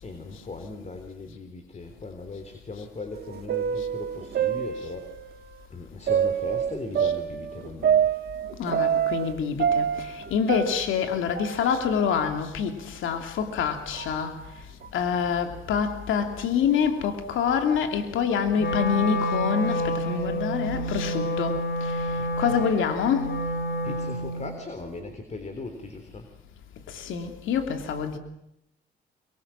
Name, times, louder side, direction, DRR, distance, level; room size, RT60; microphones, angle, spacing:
voice 1, 0.0-5.1 5.7-8.1 22.1-22.7 23.4-23.5 23.8-26.3, left 3 dB, 35° left, 3.8 m, -39 dB
sound 1, 3.1-5.3 6.1-9.3 9.6-12.0 12.2-12.3 13.1-13.2 14.0-14.2 14.8-14.9 15.7-16.0, right 8 dB, 55° right, 1.9 m, -27 dB
voice 2, 8.6-14.4 14.9-21.6 22.4-23.3 26.9-28.2, left 7 dB, 80° left, 3.0 m, -26 dB
Wind instrument woodwind instrument, 18.6-24.6, equal, 55° left, 7.2 m, -29 dB
25.0 x 23.0 x 7.5 m
cardioid pair, 90°, 20 cm